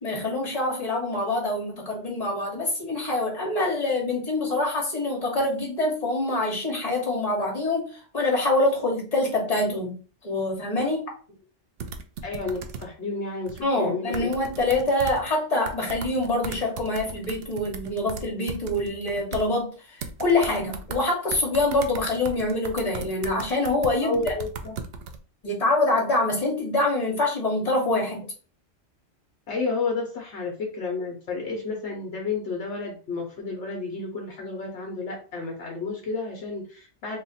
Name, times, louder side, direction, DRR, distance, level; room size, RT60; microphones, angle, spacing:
voice 1, 0.0-10.0 10.2-11.1 13.6-24.3 25.4-28.3, left 2 dB, 30° left, -1 dB, 1.4 m, -25 dB
sound 1, 11.8-12.8 13.5-13.6 14.1-15.3 15.7-19.4 20.0-21.0 21.3-25.2, right 5 dB, 60° right, 0.7 m, -36 dB
voice 2, 12.2-14.3 24.0-24.8 29.5-37.2, left 3 dB, 65° left, 0 dB, 1.0 m, -31 dB
3.0 x 2.4 x 4.0 m, 0.37 s
omnidirectional pair, 1.3 m